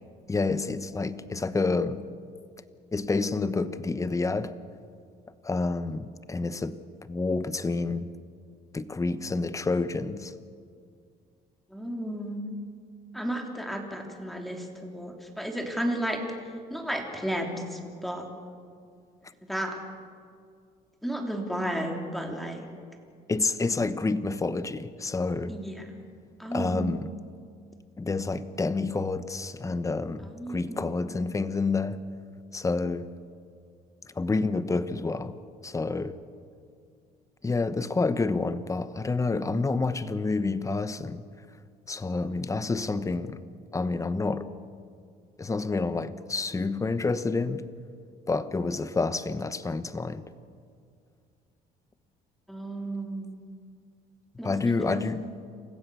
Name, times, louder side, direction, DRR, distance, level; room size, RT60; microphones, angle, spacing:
voice 1, 0.3-2.0 2.9-4.5 5.4-8.1 8.7-10.3 23.3-25.5 26.5-27.1 28.0-32.0 32.5-33.1 34.2-35.3 35.6-36.2 37.4-41.2 41.9-43.4 43.7-44.5 45.4-47.6 48.3-50.3 54.4-55.2, left 3 dB, 20° left, 13 dB, 1.0 m, -28 dB
voice 2, 11.7-12.4 13.1-16.2 16.7-18.2 19.5-19.8 21.0-22.6 25.5-25.9 26.4-27.0 30.2-31.0 52.5-53.4 54.4-55.4, right 1 dB, ahead, 2 dB, 3.3 m, -33 dB
28.0 x 15.5 x 7.1 m, 2.2 s
cardioid pair, 110°, 17 cm